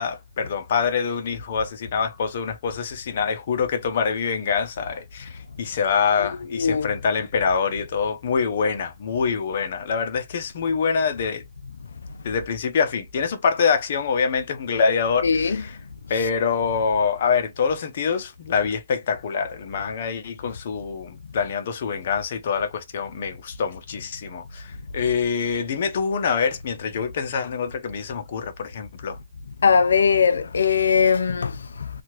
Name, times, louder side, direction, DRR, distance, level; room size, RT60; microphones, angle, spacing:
voice 1, 0.0-11.4 12.2-15.8 16.1-29.2, left 6 dB, 55° left, 0.7 m, -25 dB
voice 2, 6.5-6.9 15.2-15.6 29.6-31.9, left 6 dB, 80° left, 0.3 m, -20 dB
2.8 x 2.4 x 2.9 m
hypercardioid pair, 145°, 0 cm